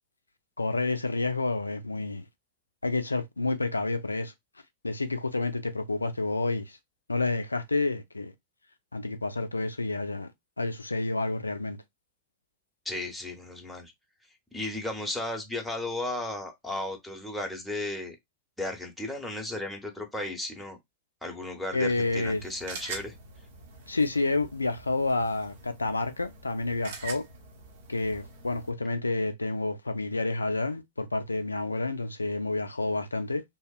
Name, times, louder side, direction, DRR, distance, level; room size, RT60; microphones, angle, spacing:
voice 1, 0.6-2.3 2.8-4.3 4.8-6.8 7.1-8.3 8.9-10.3 10.6-11.8 21.7-22.4 23.9-27.3 27.9-33.4, left 3 dB, 80° left, 0.4 m, -29 dB
voice 2, 12.8-13.9 14.5-18.2 18.6-20.8 21.2-23.1, left 2 dB, 5° left, 0.7 m, -35 dB
sound 1, 21.9-28.7, right 4 dB, 55° right, 0.7 m, -45 dB
2.7 x 2.1 x 2.3 m
figure-of-eight pair, 90°, 0 cm